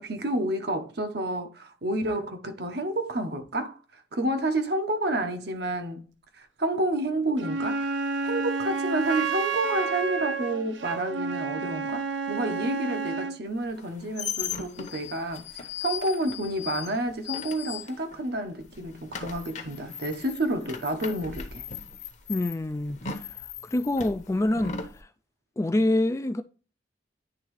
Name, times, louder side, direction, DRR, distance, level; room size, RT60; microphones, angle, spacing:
voice 1, 0.0-6.1 6.4-21.7, right 1 dB, 60° right, 1.0 m, -30 dB
Wind instrument woodwind instrument, 7.4-13.4, right 4 dB, 85° right, 0.8 m, -30 dB
sound 1, 13.7-18.3 18.6-25.0, left 7 dB, 40° left, 0.9 m, -38 dB
voice 2, 22.3-23.0 23.7-24.8 25.6-26.4, left 1 dB, 15° left, 0.3 m, -25 dB
9.9 x 3.6 x 3.1 m
head